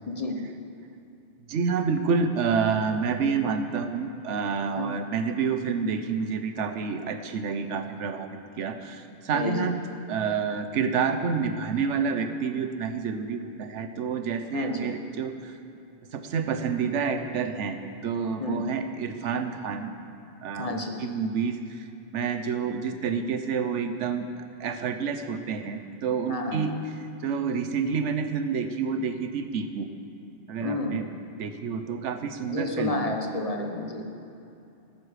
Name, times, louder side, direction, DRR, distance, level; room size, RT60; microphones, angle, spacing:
voice 1, 0.1-0.4 4.8-5.1 9.3-9.7 14.5-14.9 18.4-18.7 20.6-21.1 26.3-26.6 30.6-31.1 32.5-34.1, left 2 dB, 35° left, 2 dB, 1.0 m, -31 dB
voice 2, 1.5-9.8 10.1-15.6 16.1-19.9 20.4-26.7 27.2-29.9 30.5-31.1 31.4-33.1, right 5 dB, 90° right, 8 dB, 1.1 m, -28 dB
13.5 x 11.5 x 4.9 m, 2.7 s
omnidirectional pair, 1.2 m